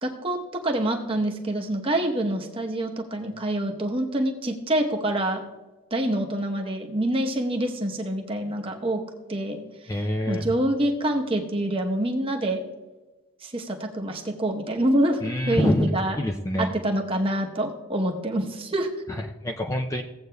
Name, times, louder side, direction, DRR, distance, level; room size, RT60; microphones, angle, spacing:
voice 1, 0.0-5.4 5.9-9.0 9.3-9.6 10.3-12.6 13.4-15.2 15.5-16.2 16.6-18.9, right 1 dB, 25° right, 2 dB, 0.9 m, -26 dB
voice 2, 9.9-10.5 15.2-16.7 19.1-20.0, left 1 dB, 15° left, 2 dB, 0.4 m, -26 dB
16.5 x 8.0 x 2.3 m, 1.2 s
head